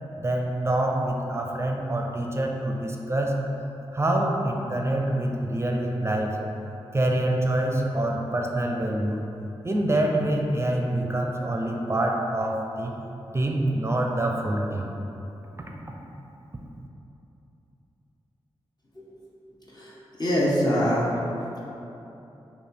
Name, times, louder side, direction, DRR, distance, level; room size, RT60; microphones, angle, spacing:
voice 1, 0.2-3.3 3.9-6.4 6.9-9.2 9.6-12.9 13.3-14.9 15.6-15.7, right 1 dB, 25° right, 0 dB, 0.5 m, -26 dB
voice 2, 19.7-21.1, equal, 40° left, -6 dB, 1.0 m, -24 dB
3.2 x 2.8 x 4.4 m, 3.0 s
cardioid pair, 40°, 10 cm